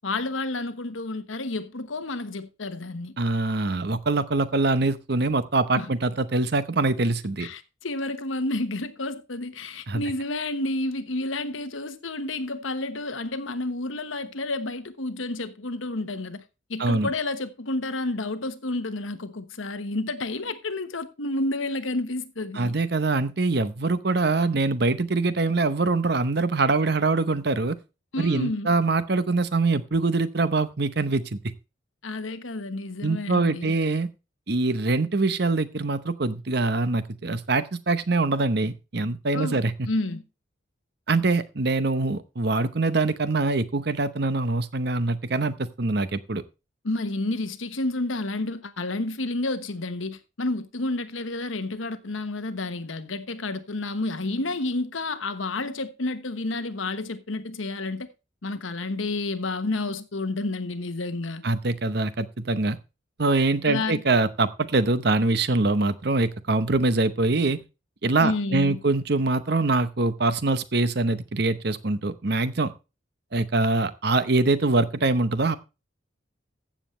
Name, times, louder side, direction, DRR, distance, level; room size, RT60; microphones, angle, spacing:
voice 1, 0.0-3.1 5.8-5.9 7.4-16.4 16.7-22.8 28.1-28.7 32.0-33.7 39.3-40.2 46.8-58.1 58.4-61.4 63.6-64.0 68.2-68.8, left 2 dB, 80° left, 1.2 m, -30 dB
voice 2, 3.2-7.5 9.9-10.0 16.8-17.1 22.5-27.8 28.2-31.4 33.0-34.1 34.5-39.9 41.1-46.4 61.4-62.8 63.2-67.6 68.0-72.7 73.3-75.6, right 3 dB, 55° right, 0.8 m, -24 dB
14.5 x 7.3 x 3.2 m
head